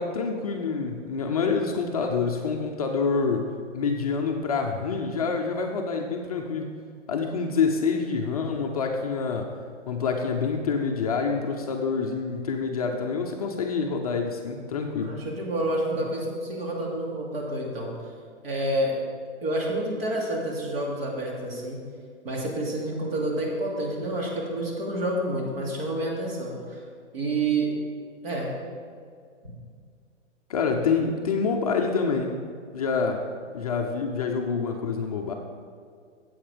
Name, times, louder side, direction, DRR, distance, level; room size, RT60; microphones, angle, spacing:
voice 1, 0.0-6.7 7.1-9.5 9.9-15.2 30.5-32.4 32.7-33.2 33.5-35.3, left 5 dB, 30° left, 2 dB, 0.5 m, -27 dB
voice 2, 15.0-17.9 18.4-19.0 19.4-21.8 22.2-26.8 27.1-27.7 28.2-28.5, right 1 dB, 50° right, -2 dB, 2.8 m, -28 dB
8.9 x 7.9 x 5.1 m, 2.2 s
hypercardioid pair, 160°, 37 cm